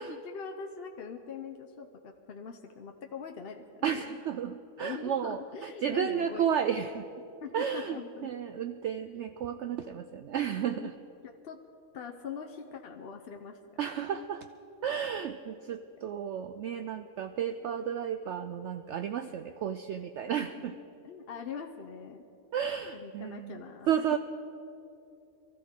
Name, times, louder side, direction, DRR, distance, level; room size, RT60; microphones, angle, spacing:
voice 1, 0.1-4.1 4.8-6.5 7.4-8.3 9.1-9.3 10.7-10.9 11.4-11.6 11.9-13.6 21.0-22.2 22.9-23.9, left 6 dB, 50° left, 4 dB, 0.8 m, -42 dB
voice 2, 3.8-7.1 7.5-8.0 8.2-11.0 13.8-14.5 14.8-20.8 22.5-24.2, right 8 dB, 65° right, 8 dB, 0.7 m, -33 dB
23.5 x 14.0 x 3.7 m, 2.7 s
omnidirectional pair, 1.6 m